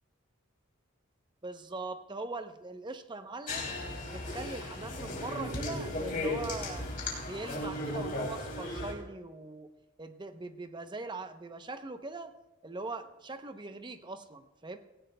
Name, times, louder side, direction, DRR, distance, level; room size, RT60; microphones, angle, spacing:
voice 1, 1.4-3.7 4.1-6.9 7.2-9.7 10.0-12.3 12.6-14.8, right 3 dB, 20° right, 8 dB, 0.7 m, -41 dB
sound 1, 3.5-8.9, left 2 dB, 40° left, 2.7 m, -36 dB
17.5 x 17.0 x 2.2 m, 1.0 s
head